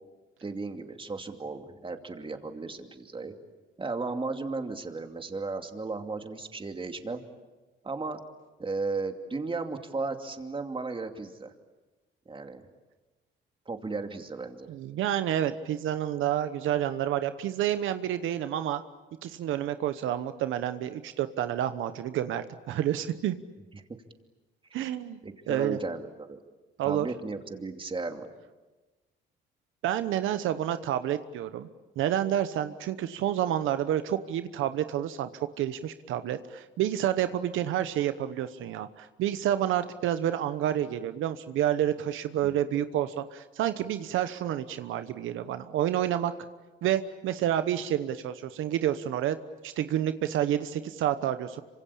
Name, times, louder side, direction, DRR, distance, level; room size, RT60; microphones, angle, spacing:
voice 1, 0.4-3.4 3.8-7.2 7.8-8.2 8.6-11.5 12.3-12.6 13.7-14.7 23.7-23.8 25.2-26.4 26.8-28.3 42.4-42.6, right 3 dB, 25° right, 5 dB, 2.7 m, -35 dB
voice 2, 14.7-18.8 19.2-23.3 24.7-25.2 25.5-25.8 26.8-27.1 29.8-31.7 32.0-35.3 35.6-46.3 46.8-49.4 49.6-51.6, right 11 dB, 85° right, 11 dB, 1.0 m, -29 dB
26.5 x 25.5 x 8.7 m, 1.2 s
cardioid pair, 90°, 20 cm